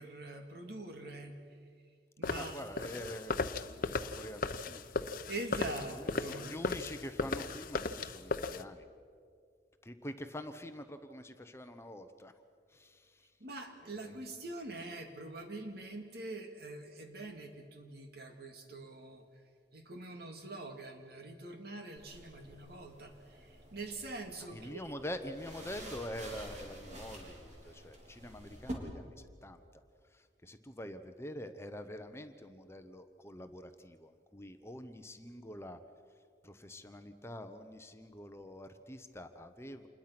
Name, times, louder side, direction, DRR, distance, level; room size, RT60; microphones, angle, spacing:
voice 1, 0.0-1.6 2.2-3.0 5.3-6.6 13.4-19.2 19.7-24.9, right 2 dB, 60° right, 4 dB, 2.6 m, -44 dB
sound 1, 2.2-8.6, left 3 dB, 55° left, 0.8 m, -37 dB
voice 2, 2.4-5.3 5.8-8.9 9.8-12.3 12.7-13.3 13.9-14.2 24.5-29.6 30.1-35.8 36.4-39.9, equal, 15° left, 8 dB, 1.0 m, -46 dB
sound 2, 22.0-28.7, right 1 dB, 40° right, 4.0 m, -49 dB
27.5 x 21.0 x 6.1 m, 2.1 s
head